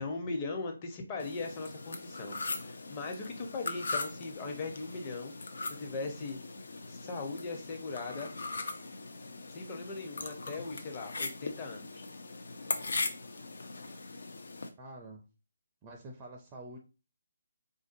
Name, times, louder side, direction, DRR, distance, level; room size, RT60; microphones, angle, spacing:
voice 1, 0.0-5.3 5.8-6.4 6.9-8.3 9.5-12.0, left 3 dB, 25° left, 2 dB, 0.7 m, -39 dB
sound 1, 1.2-14.7, left 3 dB, 65° left, 0.6 m, -40 dB
voice 2, 14.8-15.2 15.8-16.8, right 1 dB, 20° right, 2 dB, 0.5 m, -47 dB
3.6 x 2.6 x 2.5 m, 0.32 s
figure-of-eight pair, 150°, 0 cm